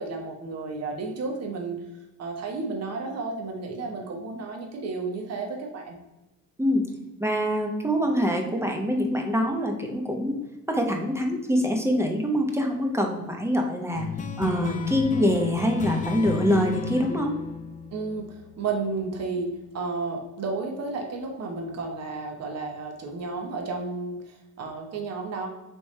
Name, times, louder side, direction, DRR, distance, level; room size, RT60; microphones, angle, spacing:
voice 1, 0.0-1.8 2.2-6.0 17.9-19.5 19.7-25.5, right 3 dB, 55° right, 2 dB, 0.9 m, -32 dB
voice 2, 7.2-10.4 10.7-14.1 14.4-17.4, equal, 10° right, 2 dB, 0.8 m, -25 dB
sound 1, 13.9-18.9, left 5 dB, 25° left, 0.4 m, -33 dB
3.5 x 3.0 x 4.2 m, 0.99 s
cardioid pair, 90°, 30 cm